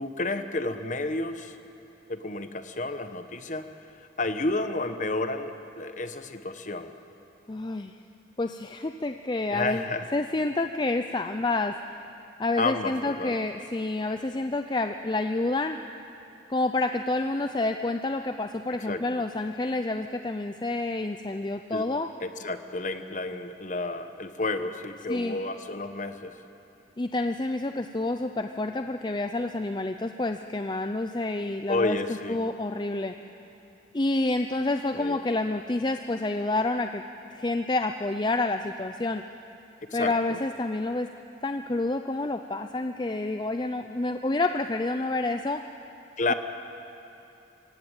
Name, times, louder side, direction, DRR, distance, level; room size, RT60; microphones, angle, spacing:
voice 1, 0.0-1.6 2.1-3.7 4.0-6.9 9.5-10.0 12.6-13.3 18.9-19.0 21.7-21.8 22.2-26.4 31.7-32.4 34.9-35.2 39.9-40.4 46.2-46.3, left 2 dB, 45° left, 9 dB, 1.1 m, -31 dB
voice 2, 7.5-8.0 8.4-9.9 10.1-12.0 12.4-15.8 16.5-22.1 25.1-25.4 27.0-33.1 33.9-37.0 37.3-39.2 39.9-41.1 41.4-45.6 46.3-46.4, left 2 dB, 25° left, 7 dB, 0.5 m, -28 dB
26.0 x 16.5 x 8.9 m, 2.8 s
head